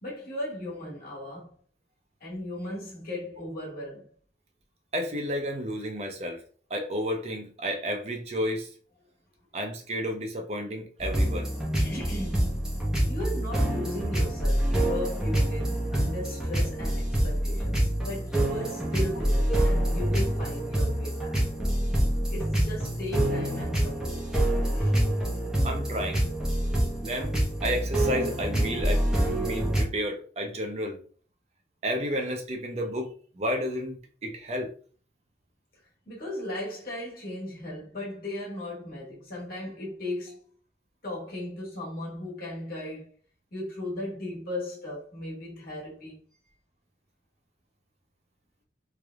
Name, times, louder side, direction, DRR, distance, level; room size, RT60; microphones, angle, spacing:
voice 1, 0.0-1.5 2.2-4.1 11.8-12.6 13.1-21.4 22.3-24.2 24.6-25.0 36.1-40.4 41.0-43.1 43.5-46.2, left 1 dB, 55° left, 1.6 m, -37 dB
voice 2, 4.9-6.4 6.7-8.7 9.5-11.5 25.6-26.3 27.0-31.0 31.8-34.7, equal, 35° right, 0.6 m, -31 dB
sound 1, 11.0-29.8, right 1 dB, 5° right, 0.9 m, -26 dB
3.8 x 3.3 x 2.3 m
head